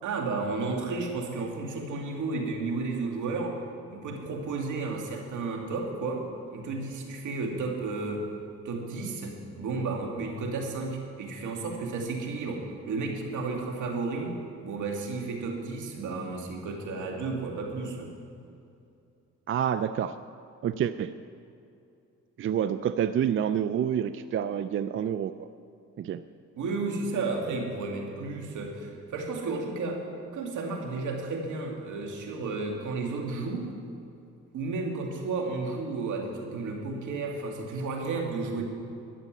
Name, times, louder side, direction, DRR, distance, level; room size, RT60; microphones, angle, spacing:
voice 1, 0.0-3.6 3.9-8.3 8.6-18.1 26.6-30.0 30.3-33.7 34.5-38.6, right 3 dB, 75° right, 1 dB, 2.3 m, -32 dB
voice 2, 19.5-20.2 20.6-21.1 22.4-25.5 26.0-26.2, right 9 dB, 45° right, 12 dB, 0.4 m, -28 dB
12.5 x 6.9 x 9.3 m, 2.6 s
cardioid pair, 90°, 30 cm